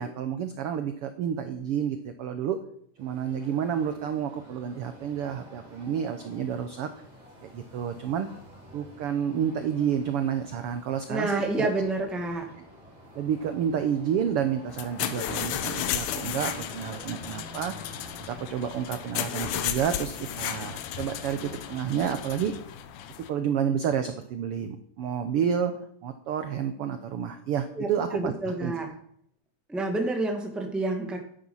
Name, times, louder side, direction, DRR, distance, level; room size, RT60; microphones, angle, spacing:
voice 1, 0.0-2.6 3.0-6.9 7.4-8.3 8.7-11.7 13.1-17.7 18.2-22.5 23.3-25.7 26.0-28.3 28.6-28.7, right 8 dB, 75° right, 8 dB, 1.3 m, -30 dB
sound 1, 3.0-22.0, equal, 35° right, 4.9 m, -49 dB
voice 2, 11.1-12.5 27.7-28.9 29.7-31.2, right 2 dB, ahead, 2 dB, 1.2 m, -29 dB
sound 2, 14.7-23.3, left 10 dB, 75° left, 2.3 m, -34 dB
12.0 x 10.0 x 5.6 m, 0.66 s
omnidirectional pair, 3.6 m